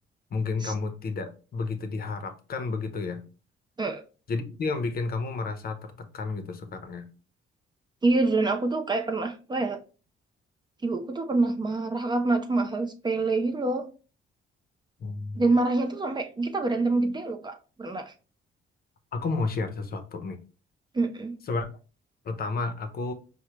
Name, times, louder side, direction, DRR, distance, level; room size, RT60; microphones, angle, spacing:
voice 1, 0.3-3.2 4.3-7.1 15.0-15.4 19.1-20.4 21.5-21.7 22.2-23.1, left 3 dB, 50° left, 0.6 m, -31 dB
voice 2, 8.0-9.8 10.8-13.9 15.4-18.1 20.9-21.4, right 3 dB, 20° right, 0.4 m, -26 dB
4.6 x 2.1 x 2.9 m
cardioid pair, 90°, 20 cm